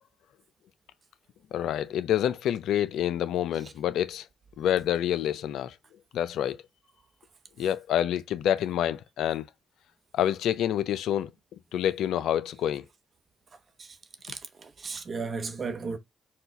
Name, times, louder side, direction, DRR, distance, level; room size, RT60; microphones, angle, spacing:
voice 1, 1.5-4.3 4.6-5.7 6.1-6.6 7.6-9.5 10.1-11.3 11.7-12.8, left 10 dB, 75° left, 0.3 m, -27 dB
voice 2, 14.2-16.0, right 4 dB, 50° right, 0.9 m, -35 dB
4.3 x 2.3 x 3.9 m
hypercardioid pair, 45°, 0 cm